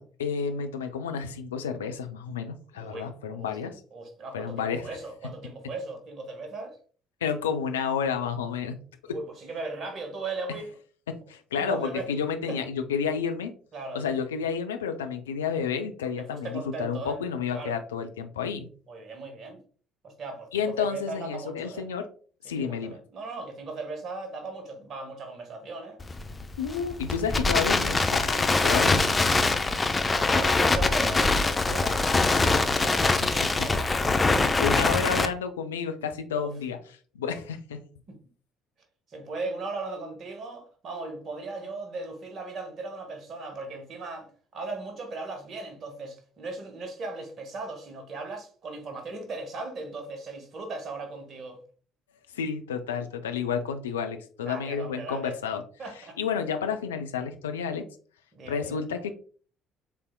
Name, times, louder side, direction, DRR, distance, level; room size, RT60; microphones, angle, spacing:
voice 1, 0.0-3.8 4.3-4.9 7.2-8.8 11.1-13.5 13.9-18.7 20.5-22.1 22.4-23.0 26.6-29.2 34.6-36.8 37.1-37.8 52.3-55.6 56.2-57.9 58.4-59.1, left 6 dB, 75° left, 0.5 m, -30 dB
voice 2, 2.7-3.5 3.9-6.8 9.1-10.7 11.5-12.1 12.5-12.6 13.7-14.1 15.5-15.7 16.2-17.2 17.5-17.8 18.9-19.6 20.0-21.9 22.4-26.0 28.6-29.2 30.0-34.4 36.3-36.5 38.1-38.2 39.1-51.6 54.4-55.4 55.8-56.2 58.3-58.8, right 3 dB, 45° right, 1.5 m, -38 dB
Crackle, 26.0-35.3, left 3 dB, 20° left, 0.6 m, -23 dB
6.8 x 3.4 x 2.2 m
figure-of-eight pair, 50°, 0 cm